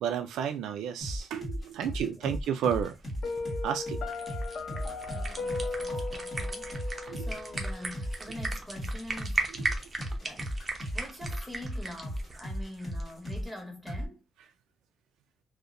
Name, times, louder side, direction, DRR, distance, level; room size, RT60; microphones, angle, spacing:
voice 1, 0.0-2.9 3.6-4.0 4.7-4.8 7.1-7.3, right 8 dB, 85° right, 0.3 m, -32 dB
sound 1, 1.0-13.6 13.9-14.1, equal, 25° left, 1.3 m, -36 dB
voice 2, 1.8-2.3 4.7-9.5 10.2-14.2, left 1 dB, ahead, 1.0 m, -45 dB
sound 2, 2.7-13.4, right 3 dB, 30° right, 0.6 m, -38 dB
Piano, 3.2-8.2, left 3 dB, 60° left, 0.6 m, -37 dB
2.6 x 2.0 x 2.5 m
cardioid pair, 90°, 0 cm